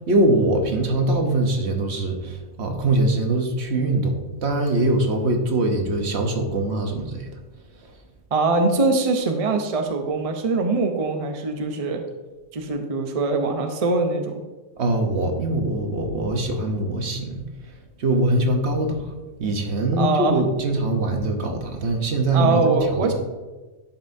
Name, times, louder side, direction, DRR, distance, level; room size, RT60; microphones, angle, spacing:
voice 1, 0.1-7.3 14.8-23.1, right 2 dB, 65° right, 4 dB, 1.2 m, -23 dB
voice 2, 8.3-12.0 12.5-14.4 20.0-20.4 20.9-21.0 22.3-23.1, right 3 dB, 35° right, 4 dB, 0.7 m, -22 dB
11.5 x 5.4 x 2.6 m, 1.2 s
omnidirectional pair, 1.3 m